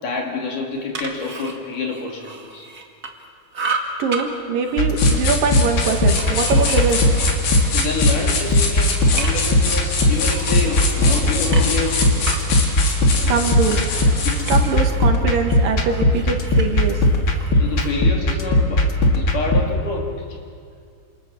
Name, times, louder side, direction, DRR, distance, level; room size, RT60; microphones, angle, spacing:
voice 1, 0.0-2.7 7.7-12.1 17.6-18.9 19.1-20.4, left 4 dB, 55° left, 1 dB, 4.4 m, -27 dB
sound 1, 0.7-3.3 3.5-4.3 4.6-8.2 8.6-9.6 10.1-15.1 15.4-18.0, right 4 dB, 30° right, 1.9 m, -34 dB
voice 2, 4.0-7.0 13.3-13.8 14.5-17.0, right 5 dB, 65° right, 4 dB, 3.3 m, -22 dB
sound 2, 4.8-19.6, left 1 dB, 40° left, 2.2 m, -19 dB
sound 3, 5.0-14.7, left 4 dB, 80° left, 5.3 m, -26 dB
28.0 x 27.5 x 7.4 m, 2.3 s
omnidirectional pair, 4.4 m